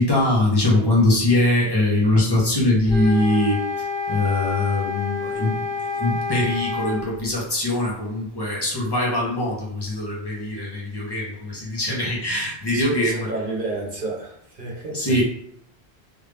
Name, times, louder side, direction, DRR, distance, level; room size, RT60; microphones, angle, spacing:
voice 1, 0.0-13.3 14.9-15.2, left 1 dB, 25° left, -5 dB, 1.1 m, -22 dB
sound 1, 2.9-7.1, left 4 dB, 5° left, 0.5 m, -28 dB
voice 2, 12.7-15.2, right 2 dB, 50° right, -2 dB, 1.2 m, -31 dB
3.4 x 2.7 x 3.5 m, 0.70 s
omnidirectional pair, 1.1 m